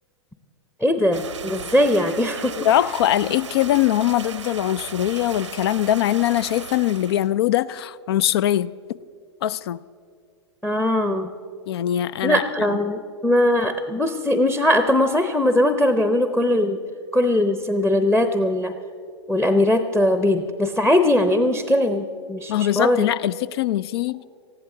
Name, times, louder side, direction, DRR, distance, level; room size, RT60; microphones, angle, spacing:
voice 1, 0.8-2.5 10.6-11.3 12.2-16.8 17.1-18.7 19.3-23.1, left 1 dB, 5° left, 0.7 m, -20 dB
sound 1, 1.1-7.3, right 7 dB, 85° right, 0.8 m, -36 dB
voice 2, 2.6-8.7 9.4-9.8 11.7-12.8 22.5-24.2, left 12 dB, 55° left, 0.5 m, -22 dB
19.0 x 14.5 x 3.8 m
figure-of-eight pair, 105°, 15 cm